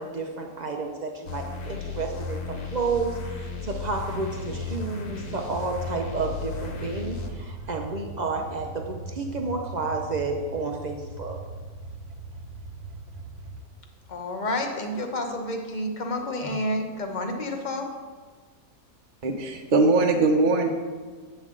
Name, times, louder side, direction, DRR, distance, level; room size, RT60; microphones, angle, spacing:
voice 1, 0.0-11.4, right 3 dB, 85° right, 3 dB, 0.4 m, -31 dB
sound 1, 1.3-7.3, left 5 dB, 85° left, 1.5 m, -35 dB
sound 2, 3.7-13.6, right 3 dB, 65° right, 1.1 m, -40 dB
voice 2, 14.1-17.9, left 1 dB, 35° left, 3 dB, 0.8 m, -29 dB
voice 3, 19.2-20.7, right 3 dB, 45° right, 2 dB, 0.6 m, -21 dB
8.6 x 7.9 x 3.7 m, 1.5 s
omnidirectional pair, 1.6 m